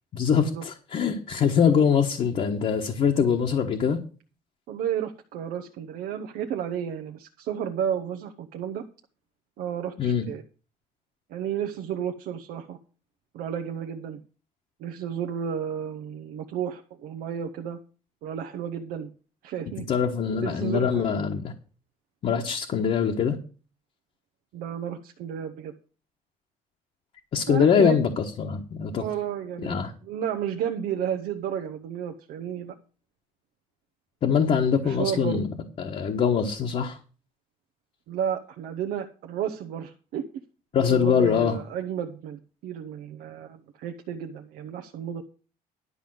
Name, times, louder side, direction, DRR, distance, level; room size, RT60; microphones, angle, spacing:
voice 1, 0.1-4.0 10.0-10.3 19.9-21.5 22.2-23.4 27.3-29.0 29.6-29.9 34.2-35.4 35.8-37.0 40.7-41.6, left 7 dB, 50° left, 1.2 m, -23 dB
voice 2, 4.7-8.8 9.6-10.4 11.3-12.8 13.3-14.2 14.8-17.8 18.2-19.1 19.4-19.9 20.4-21.1 24.5-25.7 27.5-28.0 28.9-32.7 34.8-35.4 38.1-40.2 40.9-45.2, right 9 dB, 85° right, 0.8 m, -32 dB
11.0 x 5.1 x 7.8 m
cardioid pair, 120°, 14 cm